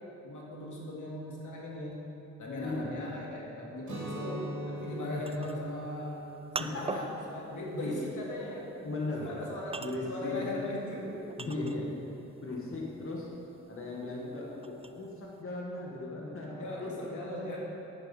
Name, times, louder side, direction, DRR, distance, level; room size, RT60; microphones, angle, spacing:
voice 1, 0.2-2.0 2.4-6.2 6.6-8.7 9.2-11.3 16.6-17.6, left 1 dB, 85° left, -3 dB, 2.0 m, -38 dB
voice 2, 2.6-2.9 6.6-7.1 7.8-8.0 8.8-9.3 9.8-10.5 11.4-11.9 12.4-13.3 13.7-17.4, left 2 dB, 45° left, -3 dB, 1.6 m, -37 dB
Guitar, 3.8-9.7, right 1 dB, 70° right, 2.5 m, -43 dB
sound 1, 4.8-12.1 12.5-15.4, right 4 dB, 20° right, 0.4 m, -43 dB
10.5 x 9.8 x 4.2 m, 3.0 s
cardioid pair, 75°, 30 cm